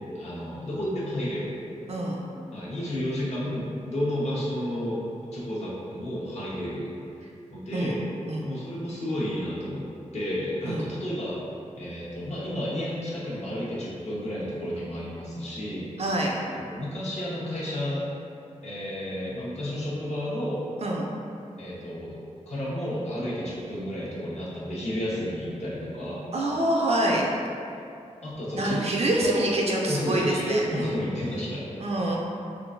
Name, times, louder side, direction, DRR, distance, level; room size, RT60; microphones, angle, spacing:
voice 1, 0.1-1.6 2.5-5.0 5.3-6.9 7.5-8.0 8.4-9.9 10.1-11.4 11.8-15.9 16.7-18.0 18.6-20.6 21.6-22.2 22.5-26.2 28.2-28.8 29.2-31.7, equal, 60° left, -8 dB, 1.0 m, -31 dB
voice 2, 1.9-2.2 7.7-8.0 8.3-8.5 10.7-10.9 16.0-16.3 20.8-21.1 26.3-27.2 28.6-30.9 31.8-32.2, right 1 dB, 55° right, -2 dB, 0.4 m, -26 dB
3.7 x 2.4 x 2.5 m, 2.5 s
wide cardioid pair, 90°, 13 cm